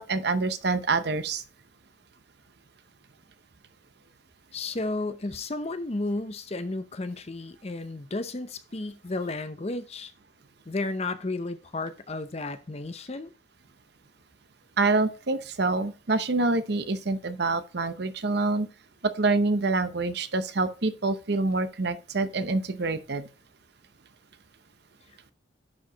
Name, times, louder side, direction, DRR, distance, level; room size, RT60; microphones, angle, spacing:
voice 1, 0.0-1.4 14.8-18.7 19.2-23.3, right 3 dB, 55° right, 0.8 m, -26 dB
voice 2, 4.5-10.1 10.7-13.3, left 2 dB, 30° left, 0.7 m, -33 dB
10.5 x 4.8 x 4.0 m
head